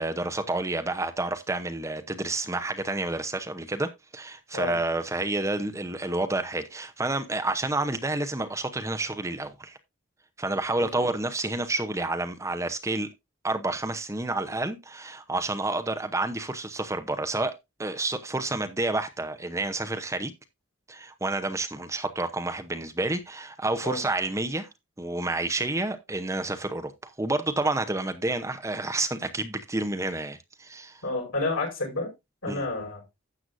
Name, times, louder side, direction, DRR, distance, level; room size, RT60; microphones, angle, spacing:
voice 1, 0.0-9.8 10.4-13.1 13.4-17.5 17.8-20.3 20.9-24.7 25.0-31.0 32.5-32.6, right 2 dB, 15° right, 0.8 m, -29 dB
voice 2, 10.8-11.1 23.8-24.0 31.0-32.1 32.4-33.0, left 2 dB, 90° left, 5.6 m, -30 dB
12.5 x 7.9 x 2.6 m
head